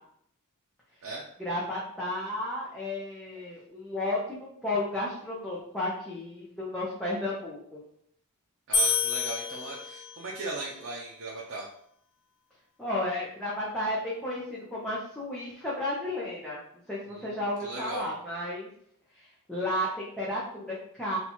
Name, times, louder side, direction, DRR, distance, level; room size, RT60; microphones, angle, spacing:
voice 1, 1.4-7.8 12.8-16.6 16.9-18.7 19.5-21.2, left 1 dB, 5° left, -8 dB, 0.6 m, -33 dB
sound 1, 8.7-10.4, left 4 dB, 85° left, 0.8 m, -28 dB
voice 2, 8.7-11.7 17.1-18.1, right 3 dB, 60° right, -3 dB, 0.6 m, -38 dB
2.9 x 2.4 x 4.2 m, 0.67 s
head